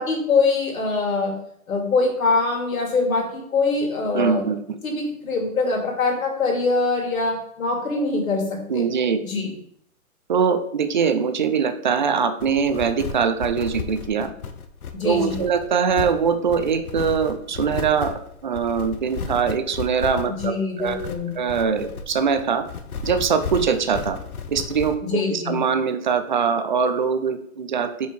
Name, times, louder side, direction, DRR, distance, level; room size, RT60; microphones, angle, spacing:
voice 1, 0.0-1.3 1.7-4.4 4.8-8.8 9.2-9.5 14.9-15.4 20.3-21.3 25.0-25.6, left 3 dB, 70° left, 0 dB, 2.5 m, -23 dB
voice 2, 4.1-4.6 8.7-9.2 10.3-14.3 15.0-18.1 18.4-21.0 21.4-22.6 23.0-24.2 24.5-28.1, right 6 dB, 35° right, 9 dB, 0.4 m, -22 dB
sound 1, 12.4-25.0, left 5 dB, 85° left, 1.0 m, -34 dB
5.4 x 4.8 x 4.5 m, 0.71 s
hypercardioid pair, 160°, 42 cm